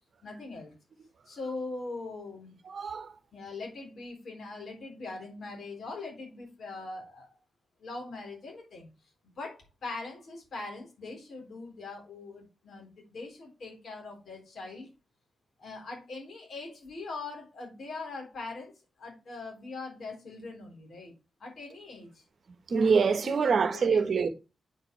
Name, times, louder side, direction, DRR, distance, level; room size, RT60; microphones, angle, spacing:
voice 1, 0.2-0.7 1.3-2.6 3.3-7.3 7.8-8.9 9.4-14.9 15.6-18.7 19.0-21.1 21.4-22.1 23.2-24.3, left 3 dB, 60° left, 3.9 m, -41 dB
voice 2, 2.6-3.1 22.7-24.3, right 5 dB, 50° right, 1.2 m, -25 dB
8.8 x 4.9 x 3.2 m
wide cardioid pair, 150°, 0 cm